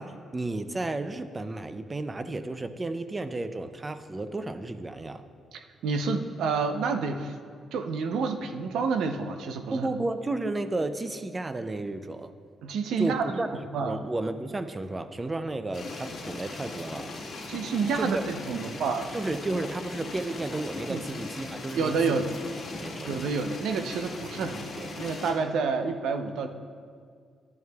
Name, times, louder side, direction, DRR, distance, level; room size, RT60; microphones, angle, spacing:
voice 1, 0.0-5.2 9.7-12.3 13.0-13.5 13.7-17.1 18.0-18.2 18.7-18.8 19.1-22.3 22.8-23.1, right 2 dB, 15° right, 10 dB, 0.3 m, -32 dB
voice 2, 5.5-7.4 7.7-9.9 12.6-13.4 13.7-14.0 17.5-19.1 20.9-21.0 21.7-22.2 23.1-26.5, right 5 dB, 80° right, 7 dB, 0.6 m, -29 dB
sound 1, 15.7-25.3, left 2 dB, 45° left, 1.2 m, -39 dB
11.0 x 9.3 x 2.3 m, 2.1 s
cardioid pair, 175°, 0 cm